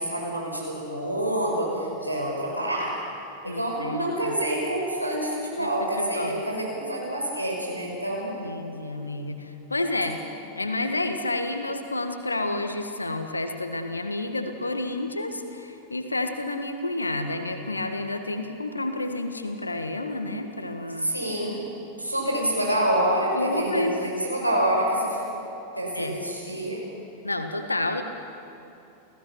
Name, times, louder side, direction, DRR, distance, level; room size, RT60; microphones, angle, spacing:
voice 1, 0.0-3.0 3.4-8.3 21.0-21.6 22.0-25.2 25.8-26.8, right 1 dB, 90° right, -2 dB, 5.4 m, -27 dB
voice 2, 3.4-4.3 5.6-6.4 8.4-10.3 10.6-21.1 23.3-24.0 25.9-26.2 27.2-28.0, left 2 dB, 80° left, 7 dB, 1.6 m, -30 dB
30.0 x 16.5 x 6.1 m, 2.8 s
figure-of-eight pair, 90°, 0 cm